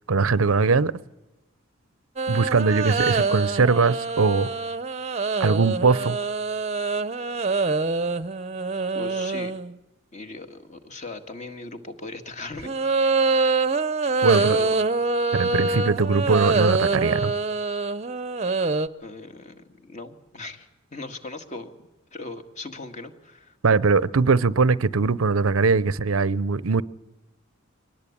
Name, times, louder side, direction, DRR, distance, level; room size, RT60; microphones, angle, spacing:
voice 1, 0.1-0.9 2.3-4.5 5.4-6.2 14.2-14.6 15.3-17.3 23.6-26.8, right 4 dB, 85° right, 0.7 m, -21 dB
sound 1, 2.2-9.7 12.6-18.9, right 3 dB, 30° right, 0.7 m, -25 dB
voice 2, 8.9-9.5 10.1-13.6 14.3-14.8 19.0-23.6, left 2 dB, 35° left, 1.8 m, -39 dB
23.5 x 19.0 x 8.6 m
head